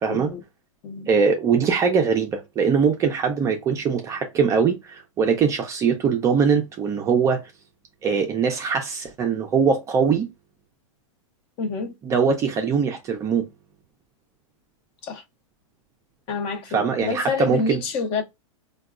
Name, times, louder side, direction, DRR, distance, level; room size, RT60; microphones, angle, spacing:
voice 1, 0.1-0.4 0.8-1.1 11.6-12.0 15.0-15.2 16.3-18.2, left 4 dB, 30° left, 0.6 m, -28 dB
voice 2, 1.1-7.4 8.0-10.3 12.1-13.5 16.7-17.8, right 6 dB, 20° right, 0.4 m, -22 dB
3.8 x 2.2 x 2.4 m
supercardioid pair, 145°, 17 cm